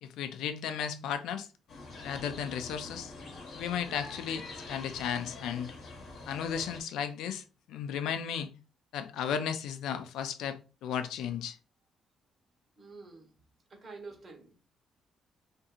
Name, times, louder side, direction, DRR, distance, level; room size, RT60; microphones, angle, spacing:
voice 1, 0.0-1.5 2.0-3.1 3.5-5.7 6.3-8.5 8.9-11.6, left 8 dB, 90° left, 0.3 m, -35 dB
sound 1, 1.7-6.8, left 3 dB, 70° left, 0.8 m, -45 dB
voice 2, 12.8-13.3 13.7-14.5, right 3 dB, 45° right, 1.1 m, -48 dB
2.8 x 2.6 x 2.3 m
cardioid pair, 90°, 0 cm